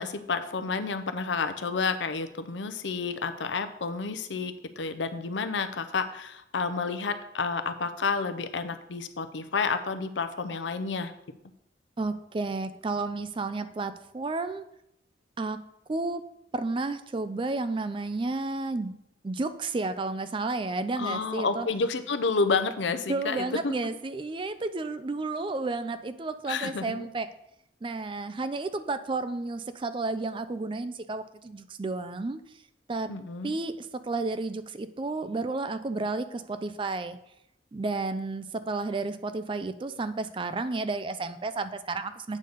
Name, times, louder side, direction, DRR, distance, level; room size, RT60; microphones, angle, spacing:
voice 1, 0.0-11.1 21.0-23.7 26.5-27.1 33.1-33.5, left 4 dB, 80° left, 10 dB, 0.6 m, -30 dB
voice 2, 12.0-14.6 15.4-15.6 15.9-16.2 16.5-19.0 19.2-21.7 23.1-27.3 27.8-32.4 32.9-33.1 33.4-37.2 37.7-42.4, right 3 dB, 25° right, 12 dB, 0.4 m, -32 dB
8.4 x 4.0 x 6.6 m, 0.81 s
head